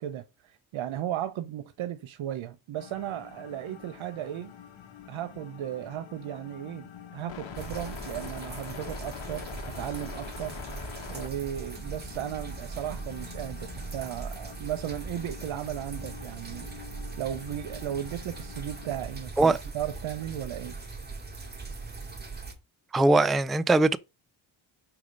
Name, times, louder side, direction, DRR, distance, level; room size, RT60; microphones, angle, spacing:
voice 1, 0.0-4.5 5.1-10.6 11.1-16.8 17.2-20.8, right 11 dB, 75° right, 0.9 m, -35 dB
sound 1, 2.7-19.1, left 8 dB, 70° left, 1.5 m, -45 dB
sound 2, 7.5-22.5, right 3 dB, 20° right, 2.4 m, -40 dB
voice 2, 22.9-24.0, right 2 dB, ahead, 0.3 m, -21 dB
5.8 x 5.0 x 5.2 m
cardioid pair, 105°, 48 cm